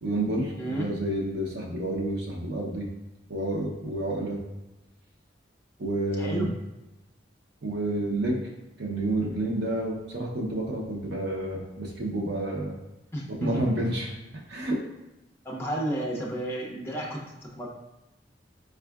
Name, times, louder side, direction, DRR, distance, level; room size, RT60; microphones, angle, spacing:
voice 1, 0.0-2.9 3.3-4.4 5.8-6.5 7.6-8.4 8.8-12.7 13.4-14.1 14.5-14.8, right 1 dB, 65° right, -1 dB, 0.7 m, -29 dB
voice 2, 0.6-0.9 6.2-6.5 13.1-13.6 15.4-17.7, right 1 dB, 15° left, -2 dB, 0.6 m, -32 dB
4.4 x 2.4 x 2.3 m, 0.98 s
head